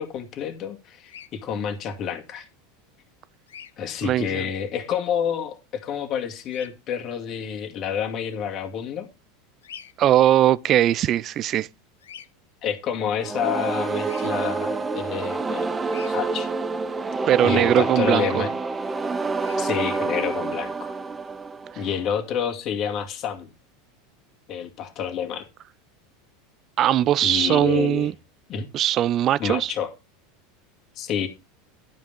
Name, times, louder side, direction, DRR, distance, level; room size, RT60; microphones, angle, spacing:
voice 1, 0.0-2.5 3.8-9.1 12.6-15.8 16.1-16.5 17.4-18.5 19.6-20.9 21.8-23.5 24.5-25.5 27.2-28.1 28.5-28.7 29.4-29.9 31.0-31.3, left 8 dB, 45° left, 2.2 m, -28 dB
Bird vocalization bird call bird song, 1.0-1.3 3.5-3.7 6.5-6.7 9.6-9.9 12.0-12.3 14.0-14.3 15.9-16.1 19.3-19.6, left 8 dB, 85° left, 0.9 m, -43 dB
voice 2, 4.0-4.4 10.0-11.7 17.3-18.4 26.8-28.1 28.7-29.7, right 12 dB, 45° right, 0.5 m, -20 dB
sound 1, 13.2-22.1, right 3 dB, 20° right, 0.9 m, -27 dB
12.0 x 5.3 x 5.2 m
hypercardioid pair, 90°, 0 cm